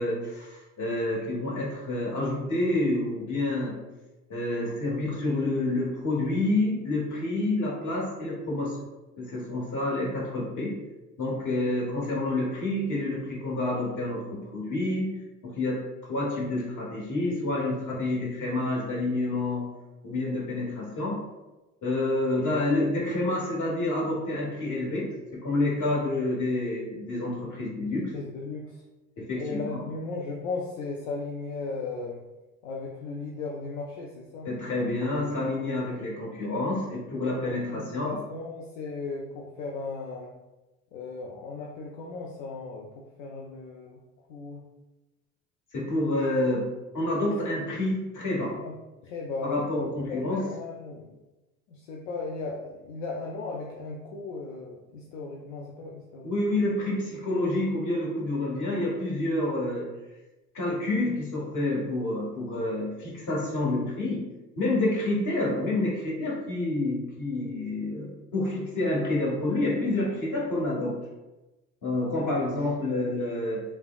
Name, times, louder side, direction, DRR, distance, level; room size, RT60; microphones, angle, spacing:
voice 1, 0.0-3.8 4.3-8.8 9.2-10.8 11.2-15.1 15.4-15.8 16.1-19.7 20.0-21.2 21.8-28.1 29.2-29.7 34.4-38.2 45.7-48.6 49.4-50.5 56.2-59.9 60.5-64.2 64.6-71.0 71.8-73.6, left 2 dB, 45° left, -4 dB, 1.3 m, -28 dB
voice 2, 27.8-28.8 29.4-32.2 32.6-34.5 37.5-40.3 40.9-42.9 43.2-44.0 44.3-44.6 48.6-48.7 49.0-49.6 50.1-51.2 51.7-56.3 72.1-72.3, left 3 dB, 70° left, -1 dB, 0.5 m, -36 dB
3.3 x 2.1 x 2.3 m, 1.0 s
hypercardioid pair, 65°, 40 cm